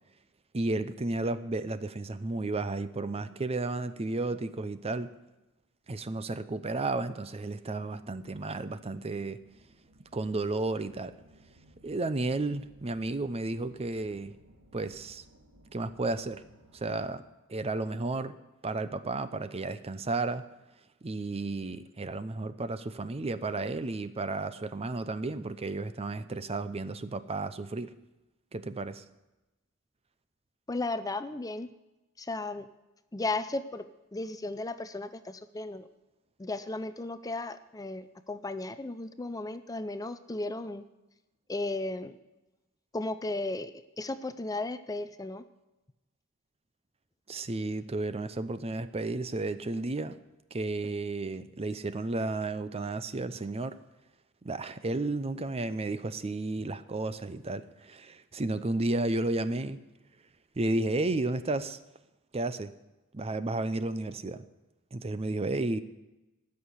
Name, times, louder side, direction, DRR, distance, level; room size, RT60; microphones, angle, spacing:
voice 1, 0.5-5.1 5.9-9.4 10.1-11.1 11.8-14.4 14.7-15.2 15.7-16.4 16.7-17.2 17.5-18.4 18.6-20.4 21.0-27.9 28.5-29.0 47.3-50.2 50.5-53.8 54.4-59.8 60.6-61.8 62.3-62.7 63.1-64.4 64.9-65.8, right 2 dB, 30° right, 13 dB, 0.6 m, -32 dB
sound 1, 7.4-17.4, right 1 dB, 90° right, 1.9 m, -61 dB
voice 2, 30.7-31.7 32.2-32.7 33.1-35.9 36.4-40.9 41.5-42.1 42.9-45.4, left 2 dB, 15° left, 12 dB, 0.5 m, -35 dB
16.0 x 6.6 x 9.6 m, 1.0 s
head